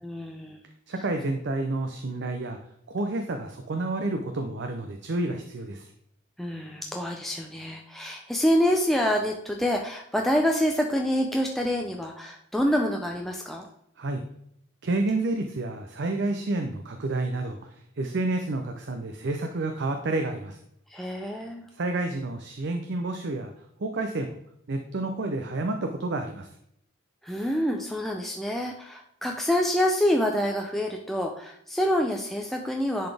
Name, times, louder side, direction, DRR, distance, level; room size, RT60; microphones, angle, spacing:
voice 1, 0.0-0.6 6.4-13.7 20.9-21.7 27.2-33.1, equal, ahead, 1 dB, 0.4 m, -26 dB
voice 2, 0.9-2.6 2.9-5.9 14.0-14.2 14.8-20.6 21.7-23.5 23.8-24.4 24.7-26.5, right 2 dB, 55° right, 5 dB, 0.5 m, -29 dB
10.5 x 4.1 x 3.3 m, 0.73 s
head